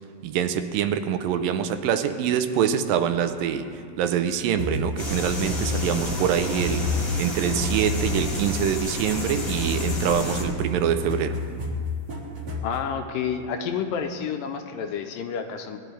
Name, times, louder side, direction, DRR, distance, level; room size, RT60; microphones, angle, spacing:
voice 1, 0.2-6.9 7.2-11.4, right 8 dB, 85° right, 9 dB, 2.3 m, -25 dB
sound 1, 4.6-12.8, left 2 dB, 45° right, 1.3 m, -31 dB
sound 2, 5.0-10.4, left 1 dB, 40° left, 1.3 m, -31 dB
voice 2, 12.6-15.8, left 7 dB, 80° left, 6 dB, 2.4 m, -29 dB
20.0 x 11.5 x 3.3 m, 2.4 s
omnidirectional pair, 4.1 m